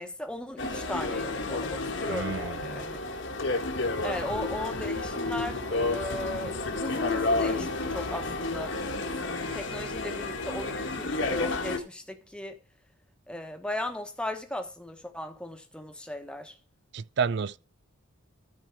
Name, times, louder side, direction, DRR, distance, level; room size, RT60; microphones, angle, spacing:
voice 1, 0.0-3.0 4.0-8.8 9.5-12.6 13.3-16.6, left 1 dB, 5° left, 1.1 m, -37 dB
sound 1, 0.6-11.8, left 2 dB, 60° left, 1.4 m, -31 dB
voice 2, 2.1-2.8 16.9-17.6, right 6 dB, 55° right, 0.4 m, -31 dB
13.5 x 4.6 x 4.5 m
head